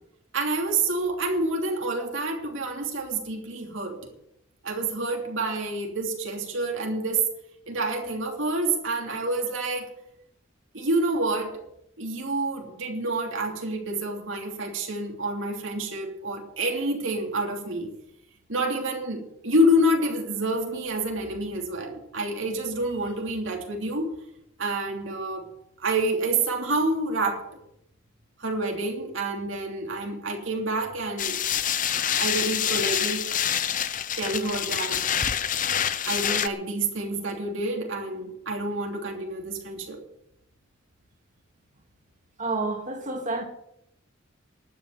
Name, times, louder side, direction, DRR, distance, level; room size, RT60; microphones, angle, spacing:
voice 1, 0.3-4.1 4.6-7.2 7.7-9.9 10.7-11.6 12.0-17.9 18.5-24.1 24.6-25.5 25.8-27.5 28.4-31.4 32.2-33.3 34.2-35.0 36.0-40.0, right 1 dB, 75° right, 3.0 m, -28 dB
sound 1, 31.2-36.5, left 9 dB, 40° left, 0.8 m, -26 dB
voice 2, 42.4-43.4, right 3 dB, 40° right, 2.4 m, -29 dB
12.0 x 8.7 x 9.2 m
head